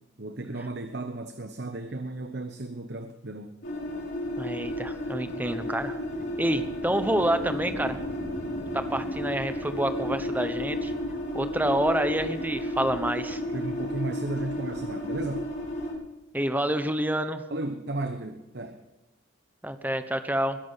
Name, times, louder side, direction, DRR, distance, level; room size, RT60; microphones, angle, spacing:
voice 1, 0.2-3.6 13.5-15.5 17.5-18.8, right 2 dB, 50° right, 8 dB, 1.0 m, -34 dB
sound 1, 3.6-15.9, left 1 dB, 55° left, 6.4 m, -33 dB
voice 2, 4.4-6.0 6.4-8.0 8.7-10.9 11.3-13.4 16.3-17.4 19.6-20.6, right 1 dB, 10° right, 9 dB, 1.0 m, -28 dB
21.0 x 11.0 x 5.7 m, 0.98 s
head